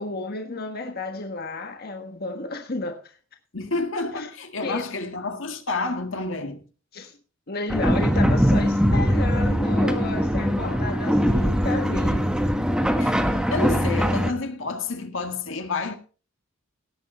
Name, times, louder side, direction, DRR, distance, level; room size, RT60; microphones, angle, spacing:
voice 1, 0.0-3.2 4.2-4.3 4.6-4.9 6.9-7.2 7.5-12.3, left 2 dB, 50° left, 1.4 m, -32 dB
voice 2, 3.5-6.6 13.0-13.2 13.5-16.0, left 3 dB, 75° left, 1.8 m, -29 dB
sound 1, 7.7-14.3, equal, 5° right, 1.3 m, -21 dB
17.5 x 8.3 x 4.3 m
head